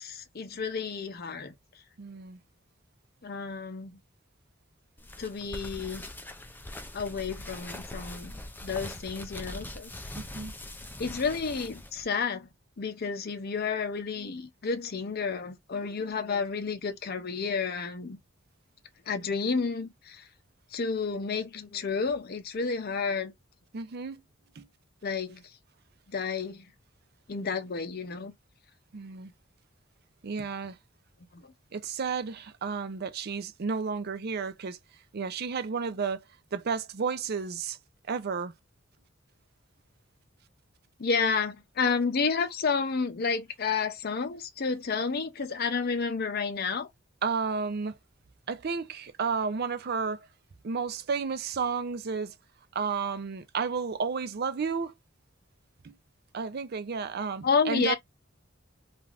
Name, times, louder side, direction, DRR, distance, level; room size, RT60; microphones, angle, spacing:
voice 1, 0.0-1.5 3.2-4.0 5.2-6.1 6.9-8.3 8.6-9.9 11.0-12.5 12.8-18.2 19.1-20.2 20.7-23.3 25.0-25.4 26.1-26.7 27.3-28.3 31.3-31.4 41.0-46.9 57.4-57.9, left 5 dB, 50° left, 0.6 m, -30 dB
voice 2, 2.0-2.4 10.2-10.5 23.7-24.2 24.6-24.7 28.9-29.3 30.2-30.8 31.7-34.8 35.1-36.2 36.5-37.8 38.1-38.5 47.2-48.0 48.5-50.3 50.6-52.3 52.7-54.9 55.8-56.0 56.3-57.9, right 5 dB, 50° right, 0.5 m, -32 dB
sound 1, 5.0-12.0, left 1 dB, 10° left, 0.3 m, -42 dB
3.2 x 2.5 x 2.4 m
head